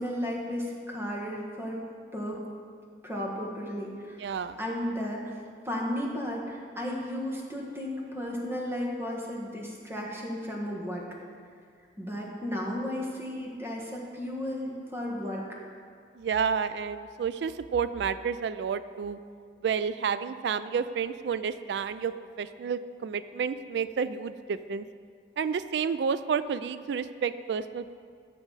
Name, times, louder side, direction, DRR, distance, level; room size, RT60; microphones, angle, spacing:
voice 1, 0.0-1.8 2.1-2.4 3.0-5.2 5.6-11.1 12.0-15.4, left 1 dB, 15° right, -2 dB, 1.4 m, -34 dB
voice 2, 4.2-4.6 16.2-19.2 19.6-24.8 25.4-27.9, right 6 dB, 70° right, 14 dB, 0.3 m, -30 dB
14.0 x 6.1 x 4.0 m, 2.2 s
head